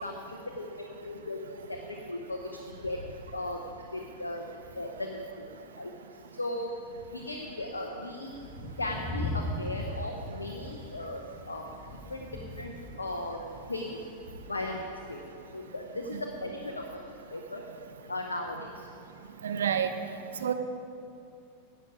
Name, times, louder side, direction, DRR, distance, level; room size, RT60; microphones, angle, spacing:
voice 1, 0.0-1.4 1.7-3.0 3.3-3.6 3.9-4.5 4.7-5.9 6.3-6.7 7.1-8.4 8.8-11.6 12.1-13.4 13.7-14.0 14.5-17.0 17.3-17.6 18.1-18.9, left 1 dB, 80° left, 2 dB, 0.7 m, -37 dB
Thunder, 8.3-15.1, left 1 dB, 10° left, 2.3 m, -39 dB
voice 2, 19.4-19.9 20.4-20.5, right 8 dB, 65° right, 8 dB, 0.5 m, -28 dB
11.0 x 8.3 x 4.9 m, 2.6 s
figure-of-eight pair, 90°, 0 cm